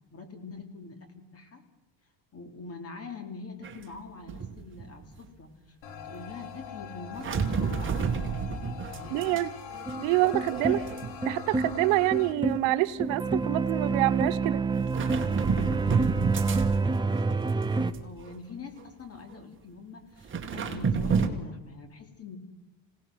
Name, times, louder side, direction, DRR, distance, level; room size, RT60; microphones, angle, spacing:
voice 1, 0.1-1.6 2.3-8.5 8.9-9.3 18.0-22.4, left 4 dB, 30° left, 6 dB, 3.3 m, -44 dB
sound 1, 3.6-3.9 4.3-5.2 7.2-9.4 9.7-11.4 11.7-12.0 13.1-13.2 14.8-17.2 17.6-18.3 18.8-18.9 20.2-21.3, right 6 dB, 25° right, 2.1 m, -30 dB
sound 2, 5.8-12.3, left 7 dB, 75° left, 2.8 m, -42 dB
voice 2, 9.1-9.5 10.0-10.8 11.2-14.6, right 18 dB, 85° right, 13 dB, 1.1 m, -26 dB
sound 3, 9.9-17.9, right 3 dB, 10° right, 0.6 m, -28 dB
26.5 x 18.0 x 6.2 m, 1.0 s
cardioid pair, 150°, 46 cm